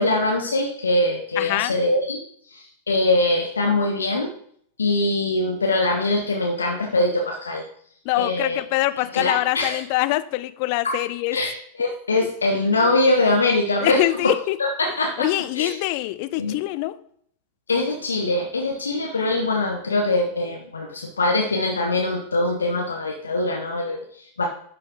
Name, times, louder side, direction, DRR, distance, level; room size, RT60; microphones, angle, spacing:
voice 1, 0.0-2.2 2.5-4.3 4.8-7.7 8.2-8.6 9.0-9.8 10.8-11.0 11.3-14.3 14.6-15.3 15.5-15.8 16.4-16.6 17.7-24.4, left 2 dB, 75° left, 1 dB, 0.9 m, -23 dB
voice 2, 1.4-1.7 8.1-11.4 12.2-12.3 13.8-14.6 15.2-17.0, left 17 dB, 45° left, 14 dB, 0.4 m, -24 dB
11.0 x 4.5 x 3.7 m, 0.63 s
figure-of-eight pair, 90°, 0 cm